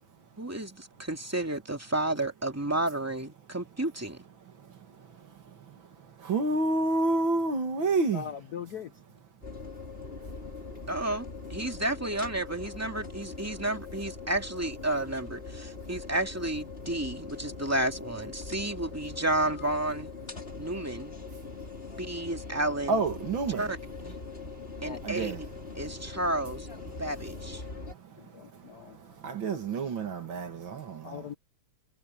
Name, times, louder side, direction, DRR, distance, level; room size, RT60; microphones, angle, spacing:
voice 1, 0.4-4.2 10.9-20.1 20.6-21.2 22.0-23.0 23.6-24.2 24.8-25.3 25.8-26.7 27.0-27.6, right 1 dB, 5° right, 2.2 m, -31 dB
voice 2, 4.5-8.3 22.9-23.7 25.0-25.4 27.7-31.3, right 3 dB, 65° right, 2.7 m, -30 dB
voice 3, 8.1-8.9 24.8-25.0 28.2-29.0 31.0-31.3, left 8 dB, 60° left, 1.1 m, -40 dB
sound 1, 9.4-27.9, left 4 dB, 25° left, 3.9 m, -42 dB
omnidirectional pair, 2.4 m